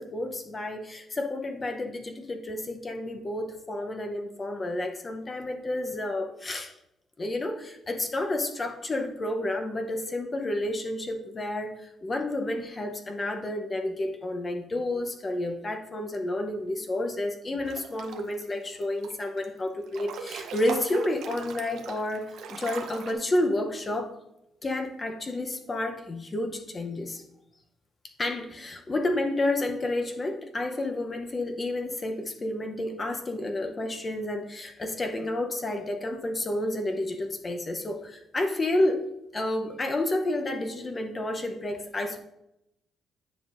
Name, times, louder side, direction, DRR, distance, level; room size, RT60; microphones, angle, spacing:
voice 1, 0.0-6.7 7.2-24.1 24.6-27.2 28.2-39.0 39.3-42.2, left 1 dB, 30° left, 5 dB, 0.7 m, -30 dB
Breathing / Bathtub (filling or washing) / Splash splatter, 17.7-18.4 18.8-19.5 19.8-23.1, right 6 dB, 75° right, 0.7 m, -40 dB
9.8 x 5.3 x 2.5 m, 0.83 s
cardioid pair, 90°, 0 cm